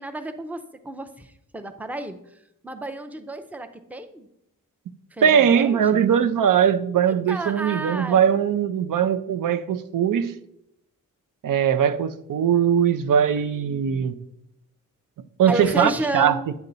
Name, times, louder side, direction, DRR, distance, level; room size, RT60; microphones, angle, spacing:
voice 1, 0.0-4.3 5.1-6.1 7.1-8.3 15.5-16.5, right 2 dB, 5° right, 0.6 m, -32 dB
voice 2, 5.2-10.4 11.4-14.2 15.4-16.5, right 8 dB, 75° right, 0.6 m, -20 dB
9.4 x 7.0 x 3.9 m
wide cardioid pair, 130°, 33 cm